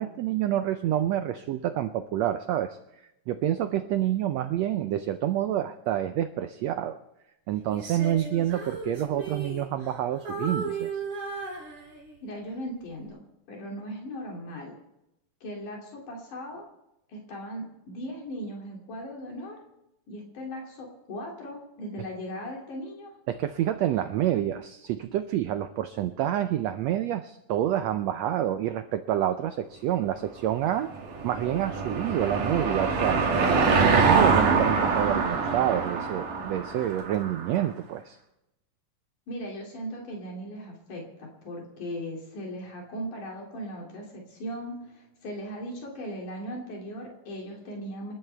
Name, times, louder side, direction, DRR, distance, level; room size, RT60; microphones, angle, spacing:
voice 1, 0.0-2.8 3.3-7.0 7.5-11.0 23.3-30.9 31.2-33.2 33.7-38.2, right 11 dB, 90° right, 10 dB, 1.5 m, -28 dB
Female singing, 7.7-10.0 10.2-12.3 12.8-13.1, right 3 dB, 45° right, 5.3 m, -36 dB
voice 2, 12.2-13.2 13.5-14.8 15.4-16.7 17.1-19.6 20.1-23.1 39.3-48.1, equal, 70° left, -1 dB, 4.2 m, -38 dB
Car passing by / Engine, 30.6-37.5, right 4 dB, 75° right, 3.9 m, -24 dB
28.0 x 12.5 x 3.4 m, 0.87 s
omnidirectional pair, 3.8 m